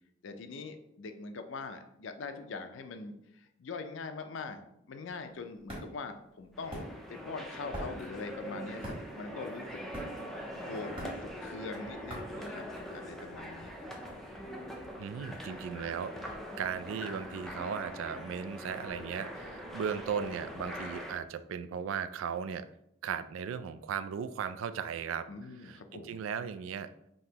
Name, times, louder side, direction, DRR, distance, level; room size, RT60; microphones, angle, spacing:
voice 1, 0.2-4.6 4.9-9.8 10.6-12.7 12.9-13.7 25.3-26.2, left 4 dB, 70° left, 8 dB, 0.5 m, -42 dB
sound 1, 5.1-13.2, equal, 25° right, 1.5 m, -45 dB
sound 2, 6.5-21.2, equal, ahead, 0.4 m, -43 dB
voice 2, 15.0-22.7 23.0-25.2 25.6-26.9, right 7 dB, 80° right, 12 dB, 0.3 m, -37 dB
5.3 x 2.9 x 2.8 m, 0.79 s
head